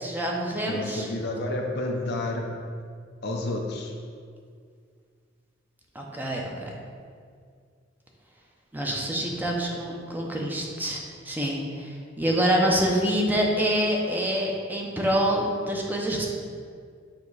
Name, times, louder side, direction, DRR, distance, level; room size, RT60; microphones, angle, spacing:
voice 1, 0.0-1.1 5.9-6.7 8.7-16.3, equal, 10° right, -2 dB, 0.7 m, -26 dB
voice 2, 0.7-2.6 3.2-3.9, left 2 dB, 60° left, 1 dB, 0.7 m, -30 dB
7.5 x 3.0 x 4.7 m, 2.1 s
head